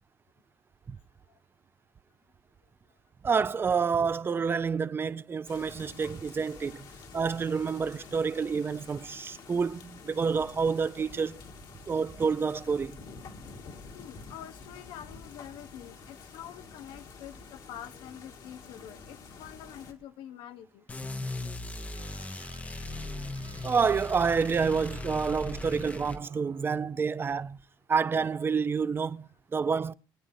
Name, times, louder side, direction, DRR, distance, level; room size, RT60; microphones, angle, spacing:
voice 1, 3.2-6.9 7.1-11.4 11.9-13.0 23.6-27.6 27.9-29.9, right 5 dB, 25° right, 0.5 m, -28 dB
sound 1, 5.4-19.9, left 4 dB, 60° left, 1.9 m, -48 dB
voice 2, 13.9-20.8 22.3-22.4, left 10 dB, 85° left, 0.9 m, -46 dB
sound 2, 20.9-26.2, left 2 dB, 15° left, 0.7 m, -38 dB
sound 3, 21.9-26.9, right 10 dB, 75° right, 2.8 m, -55 dB
24.0 x 8.8 x 2.7 m
cardioid pair, 125°, 8 cm